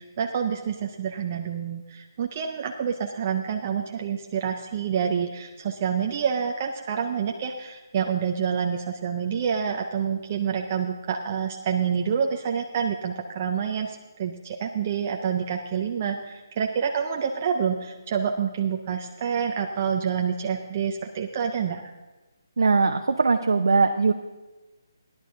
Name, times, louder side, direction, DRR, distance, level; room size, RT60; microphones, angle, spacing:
voice 1, 0.0-21.8, right 7 dB, 25° right, 2 dB, 0.5 m, -27 dB
voice 2, 22.6-24.1, right 4 dB, 70° right, 5 dB, 0.7 m, -20 dB
15.5 x 11.0 x 3.8 m, 1.1 s
hypercardioid pair, 175°, 2 cm